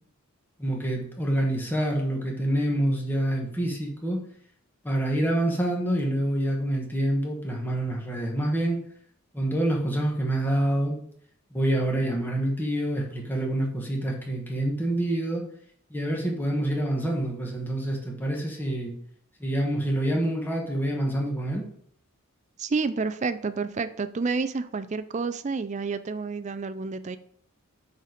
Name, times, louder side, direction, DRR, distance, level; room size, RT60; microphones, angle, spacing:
voice 1, 0.6-4.2 4.8-8.8 9.3-11.0 11.5-15.4 15.9-18.9 19.4-21.7, right 1 dB, 10° left, -1 dB, 1.3 m, -27 dB
voice 2, 22.6-27.2, right 4 dB, 30° right, 12 dB, 0.4 m, -29 dB
9.0 x 4.1 x 5.1 m, 0.64 s
head